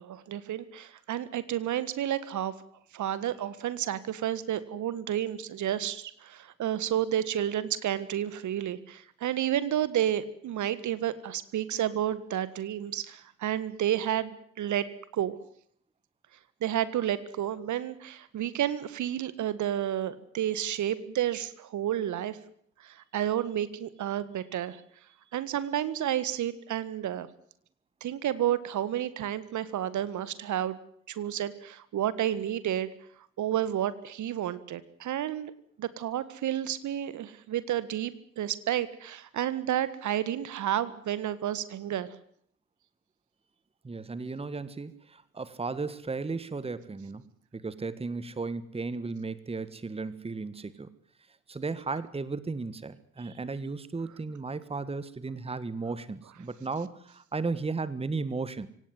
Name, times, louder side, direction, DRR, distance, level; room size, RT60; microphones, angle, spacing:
voice 1, 0.0-2.5 2.9-14.9 15.1-15.4 16.6-22.4 22.8-24.8 25.3-27.3 28.0-30.8 31.1-32.9 33.4-35.5 35.8-42.1 53.2-53.3, right 11 dB, 45° right, 16 dB, 1.7 m, -31 dB
voice 2, 43.8-47.2 47.5-50.9 51.5-58.7, right 4 dB, 15° right, 16 dB, 1.6 m, -35 dB
25.0 x 18.0 x 9.4 m, 0.67 s
figure-of-eight pair, 55°, 40 cm